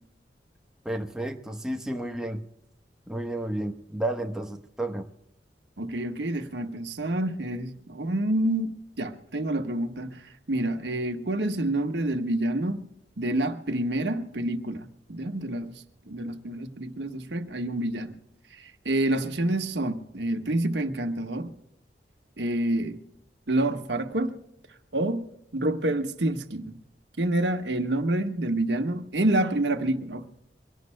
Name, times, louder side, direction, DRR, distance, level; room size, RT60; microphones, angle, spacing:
voice 1, 0.8-2.4 3.1-5.1, right 1 dB, 5° right, 1.0 m, -32 dB
voice 2, 5.8-10.2 10.5-12.8 13.2-15.7 16.1-18.2 18.5-21.5 22.4-23.0 23.5-24.4 24.9-25.2 25.5-26.7 27.2-30.3, right 1 dB, 80° right, 1.4 m, -28 dB
24.5 x 18.0 x 2.2 m
head